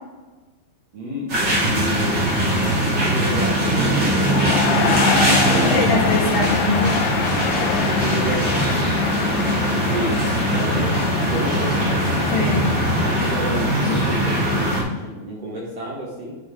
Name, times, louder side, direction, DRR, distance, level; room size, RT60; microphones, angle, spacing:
voice 1, 0.9-1.3 1.7-2.2 3.0-5.1 5.4-6.0 6.4-6.6 7.9-8.8 9.7-12.1 13.0-16.3, right 1 dB, 55° right, -4 dB, 1.8 m, -30 dB
sound 1, 1.3-14.8, equal, 30° right, 2.6 m, -21 dB
sound 2, 3.2-13.2, left 8 dB, 85° left, 2.0 m, -27 dB
voice 2, 5.5-7.0 12.3-12.8, left 2 dB, 60° left, -2 dB, 2.6 m, -23 dB
11.0 x 6.2 x 3.5 m, 1.2 s
omnidirectional pair, 4.6 m